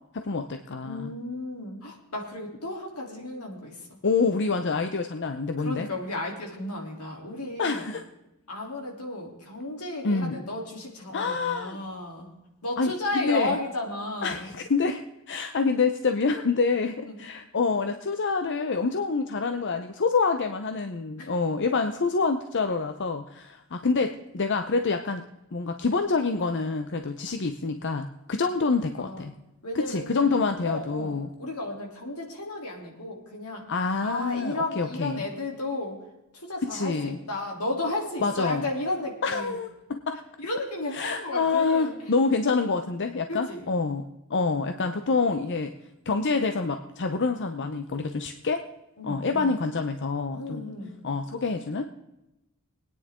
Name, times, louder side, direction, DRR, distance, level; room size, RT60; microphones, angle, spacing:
voice 1, 0.1-1.1 4.0-5.9 7.6-8.0 10.0-10.4 11.1-11.8 12.8-13.5 14.2-25.2 25.5-29.3 29.7-31.3 33.7-35.2 36.6-37.2 38.2-38.6 39.2-40.2 40.9-45.7 46.1-48.7 49.0-50.6 51.0-51.9, left 4 dB, 55° left, 7 dB, 0.7 m, -27 dB
voice 2, 0.8-3.9 5.6-7.9 8.5-12.3 12.6-14.5 17.0-17.2 21.2-21.3 29.0-29.3 29.6-30.3 30.6-33.7 34.0-36.0 36.3-39.5 40.4-42.1 43.3-43.7 49.0-49.5 50.3-51.0, left 2 dB, 80° left, 0 dB, 3.3 m, -33 dB
21.5 x 9.7 x 3.7 m, 0.93 s
head